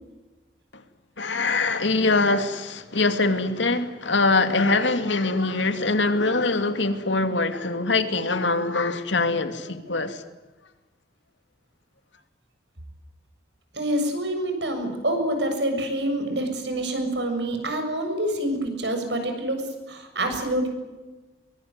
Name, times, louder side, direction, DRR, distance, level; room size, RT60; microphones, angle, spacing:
voice 1, 1.2-10.2, left 3 dB, 85° left, 2.5 m, -23 dB
voice 2, 13.7-20.7, right 1 dB, 75° right, 7.2 m, -27 dB
23.5 x 23.5 x 9.6 m
head